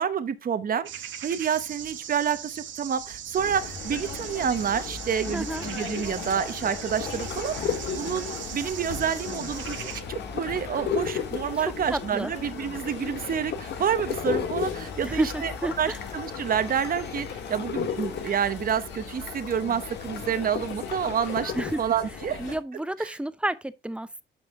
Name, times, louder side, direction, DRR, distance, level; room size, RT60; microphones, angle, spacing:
voice 1, 0.0-15.5 15.8-21.5 21.8-22.6 23.0-23.1, right 8 dB, 45° right, 0.9 m, -28 dB
sound 1, 0.9-10.0, right 10 dB, 70° right, 1.0 m, -39 dB
sound 2, 3.3-22.6, left 5 dB, 80° left, 2.9 m, -38 dB
voice 2, 5.3-5.6 11.6-12.3 15.0-16.0 21.6-21.8 22.4-24.2, right 1 dB, 5° right, 0.6 m, -31 dB
sound 3, 6.9-21.7, left 7 dB, 60° left, 1.2 m, -35 dB
9.1 x 5.5 x 3.6 m
cardioid pair, 90°, 20 cm